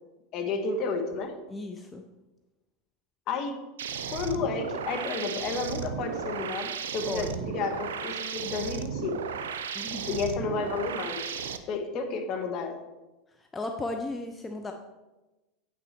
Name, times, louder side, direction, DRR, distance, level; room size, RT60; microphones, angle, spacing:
voice 1, 0.3-1.3 3.3-3.6 4.1-9.2 10.1-11.4 11.7-12.8, left 4 dB, 45° left, 5 dB, 1.5 m, -31 dB
voice 2, 1.5-2.0 7.1-7.5 9.7-10.1 13.4-14.7, left 2 dB, 20° left, 5 dB, 0.7 m, -35 dB
sound 1, 3.8-11.6, right 7 dB, 80° right, 0.6 m, -35 dB
8.9 x 6.0 x 4.5 m, 1.1 s
hypercardioid pair, 90°, 0 cm